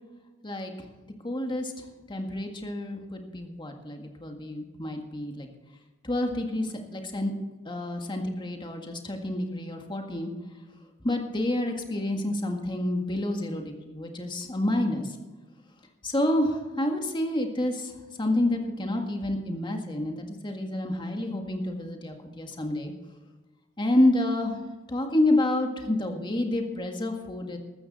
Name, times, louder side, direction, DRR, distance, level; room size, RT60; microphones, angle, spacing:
voice 1, 1.2-5.5 6.0-7.3 7.7-10.3 11.0-15.1 16.0-17.9 18.2-22.9 23.8-24.6 24.9-27.6, left 1 dB, 25° left, 3 dB, 1.8 m, -28 dB
14.5 x 13.0 x 4.2 m, 1.2 s
head